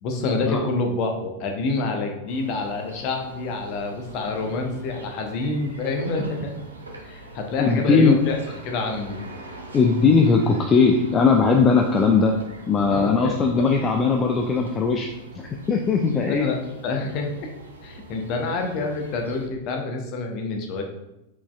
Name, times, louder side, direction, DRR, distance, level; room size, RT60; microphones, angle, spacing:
voice 1, 0.0-6.5 7.0-8.4 8.6-9.2 12.9-13.4 16.3-17.3 17.8-20.8, left 3 dB, 40° left, 3 dB, 0.8 m, -27 dB
sound 1, 2.3-19.5, right 1 dB, 80° right, 0.7 m, -43 dB
voice 2, 7.6-8.2 9.7-12.3 12.7-15.1 15.3-16.5, left 4 dB, 25° left, 2 dB, 0.4 m, -19 dB
4.6 x 4.1 x 2.4 m, 0.89 s
figure-of-eight pair, 90°, 0 cm